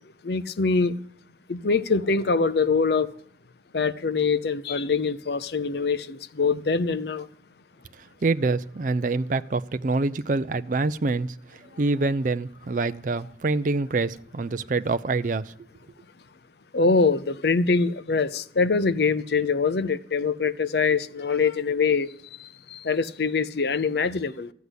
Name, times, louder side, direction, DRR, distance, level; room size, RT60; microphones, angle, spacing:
voice 1, 0.2-1.0 1.5-3.1 3.7-7.3 16.7-24.5, left 4 dB, 60° left, 0.6 m, -24 dB
voice 2, 8.2-11.3 11.8-15.5, right 3 dB, 45° right, 0.4 m, -25 dB
14.0 x 8.2 x 8.1 m
head